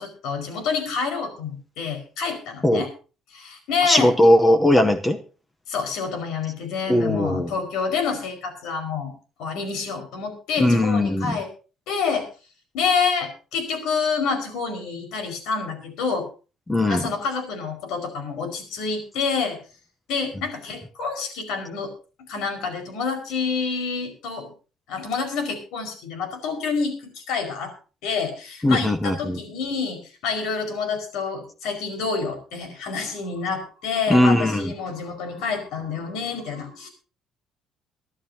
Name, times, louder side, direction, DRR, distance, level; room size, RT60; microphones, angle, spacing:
voice 1, 0.0-2.9 3.3-4.1 5.7-9.1 9.4-11.5 11.9-12.2 12.7-16.3 16.9-19.6 20.1-21.9 22.3-24.5 24.9-27.7 28.0-36.9, left 5 dB, 80° left, 6 dB, 5.1 m, -28 dB
voice 2, 3.8-5.2 6.9-7.5 10.6-11.4 16.7-17.0 28.6-29.4 34.1-34.7, left 1 dB, 10° left, 8 dB, 0.9 m, -19 dB
23.5 x 11.5 x 2.8 m, 0.35 s
cardioid pair, 165°, 0 cm